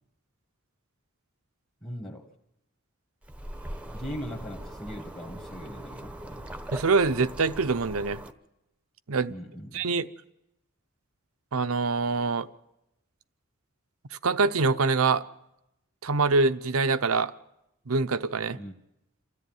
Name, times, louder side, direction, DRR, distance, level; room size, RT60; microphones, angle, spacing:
voice 1, 1.8-2.3 3.9-6.5 9.3-9.8 18.5-18.7, equal, 20° left, 0 dB, 1.6 m, -40 dB
sound 1, 3.2-8.3, right 1 dB, 5° right, 0.9 m, -41 dB
voice 2, 6.7-8.2 9.1-9.3 9.7-10.1 11.5-12.5 14.2-15.2 16.0-17.3 17.9-18.6, right 4 dB, 80° right, 13 dB, 0.8 m, -24 dB
28.5 x 13.5 x 9.3 m, 0.90 s
head